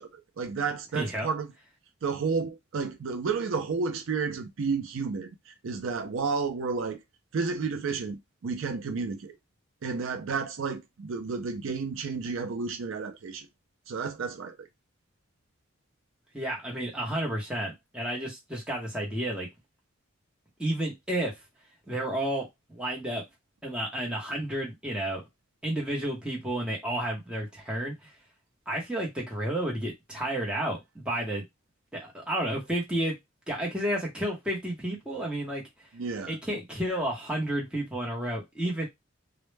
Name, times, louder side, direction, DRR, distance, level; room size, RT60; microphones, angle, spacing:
voice 1, 0.0-1.5 2.0-7.0 7.3-9.3 9.8-13.5 13.9-14.7 35.9-36.4, right 5 dB, 70° right, 0.4 m, -31 dB
voice 2, 0.9-1.3 16.3-19.5 20.6-21.4 21.9-23.2 23.6-25.2 25.6-28.1 28.7-31.4 31.9-33.1 33.5-35.6 36.3-38.9, right 1 dB, 5° right, 0.7 m, -31 dB
2.1 x 2.0 x 3.2 m
head